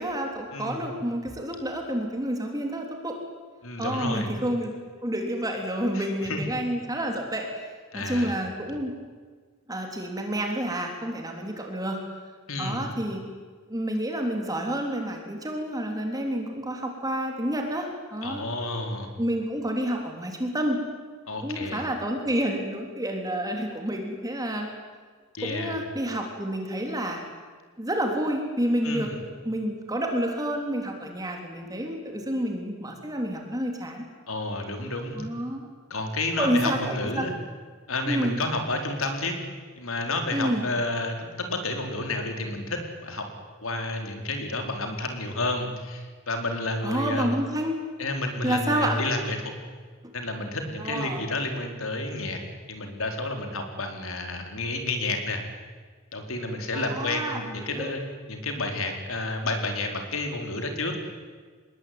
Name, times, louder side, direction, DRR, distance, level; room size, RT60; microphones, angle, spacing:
voice 1, 0.0-3.2 3.8-4.7 5.0-7.5 7.9-8.9 9.7-12.0 12.6-13.2 13.7-18.4 19.2-20.8 21.4-24.7 25.4-27.2 27.8-34.1 35.2-35.7 36.4-37.3 38.1-38.4 40.3-40.7 46.8-47.8 48.4-49.0 50.8-51.2 56.7-57.9, right 1 dB, 15° right, 2 dB, 3.4 m, -29 dB
voice 2, 0.5-0.9 3.6-4.3 5.9-6.4 7.9-8.3 12.5-12.8 18.2-19.1 21.3-21.9 25.3-25.8 28.8-29.2 34.3-35.2 35.9-37.3 37.9-39.4 39.8-43.3 43.6-47.3 48.0-49.5 50.1-52.4 52.7-55.4 56.1-58.0 58.3-61.0, left 2 dB, 65° left, 4 dB, 4.3 m, -30 dB
26.5 x 21.0 x 9.6 m, 1.5 s
head